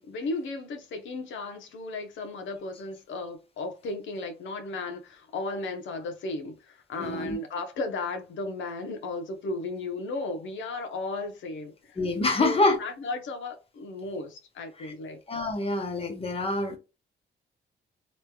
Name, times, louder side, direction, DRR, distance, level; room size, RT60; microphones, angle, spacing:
voice 1, 0.0-12.0 12.4-15.2, left 2 dB, 75° left, 0.9 m, -35 dB
voice 2, 7.0-7.4 12.0-12.8 14.8-14.9 15.3-16.8, left 2 dB, 30° left, 1.3 m, -26 dB
3.1 x 3.0 x 2.3 m
cardioid pair, 90°, 20 cm